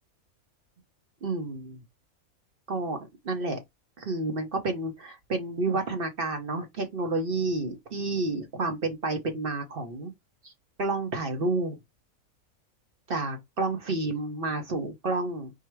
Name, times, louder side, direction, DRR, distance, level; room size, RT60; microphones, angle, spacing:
voice 1, 1.2-1.8 2.7-3.6 4.0-10.1 10.4-10.5 10.8-11.8 13.1-15.5, right 2 dB, 45° right, 1.0 m, -30 dB
4.7 x 2.1 x 4.4 m
omnidirectional pair, 1.5 m